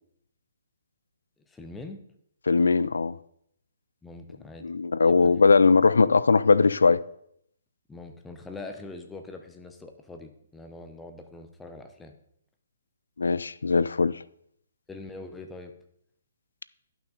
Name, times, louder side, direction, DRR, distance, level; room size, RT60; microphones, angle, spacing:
voice 1, 1.5-2.0 4.0-4.7 5.0-5.5 7.9-12.1 14.9-15.7, left 3 dB, 5° left, 0.8 m, -43 dB
voice 2, 2.5-3.2 4.6-7.0 13.2-14.2, left 4 dB, 85° left, 0.3 m, -20 dB
11.0 x 6.0 x 3.9 m
hypercardioid pair, 145°, 0 cm